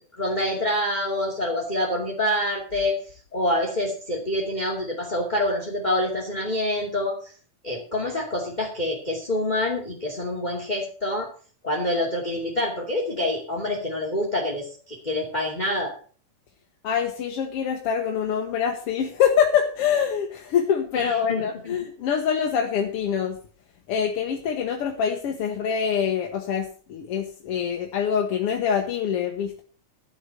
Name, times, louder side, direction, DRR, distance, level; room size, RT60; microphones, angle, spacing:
voice 1, 0.1-3.0 3.3-7.3 7.6-11.3 11.6-15.9 20.9-21.7, left 1 dB, 15° left, -1 dB, 2.2 m, -26 dB
voice 2, 16.8-23.4 23.9-29.6, left 7 dB, 60° left, 3 dB, 1.7 m, -25 dB
12.0 x 6.5 x 6.8 m, 0.42 s
omnidirectional pair, 3.6 m